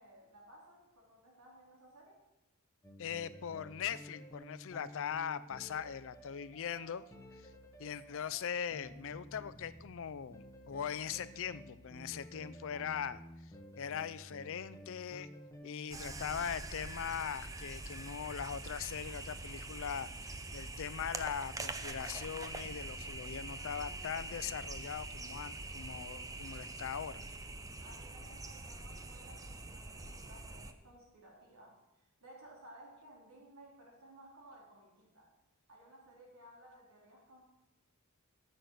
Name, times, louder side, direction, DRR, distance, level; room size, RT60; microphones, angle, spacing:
voice 1, 0.0-2.2 23.5-24.5 27.8-35.3 35.7-37.4, right 1 dB, 75° right, -3 dB, 3.7 m, -58 dB
sound 1, 2.8-16.4, equal, 15° left, 1.2 m, -53 dB
voice 2, 3.0-7.0 7.8-13.2 13.8-15.3 15.6-27.2, left 8 dB, 60° left, 15 dB, 0.4 m, -40 dB
sound 2, 15.9-30.7, right 2 dB, 15° right, 0.6 m, -44 dB
13.5 x 6.5 x 6.5 m, 0.97 s
head